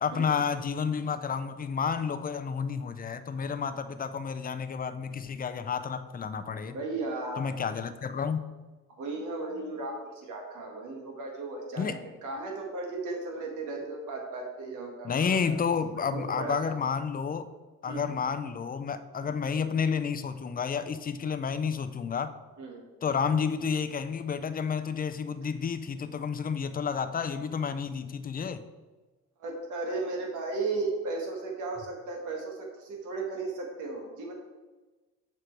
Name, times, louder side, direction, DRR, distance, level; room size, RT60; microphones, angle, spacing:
voice 1, 0.0-6.8 7.4-8.5 11.8-12.0 15.0-17.5 17.8-22.3 23.0-28.6, left 6 dB, 30° left, 11 dB, 0.5 m, -30 dB
voice 2, 6.7-7.4 8.9-15.4 16.1-16.8 17.9-18.1 19.2-19.3 22.6-22.8 29.4-34.3, right 3 dB, 80° right, 0 dB, 1.7 m, -35 dB
7.0 x 4.5 x 4.5 m, 1.2 s
cardioid pair, 90°, 30 cm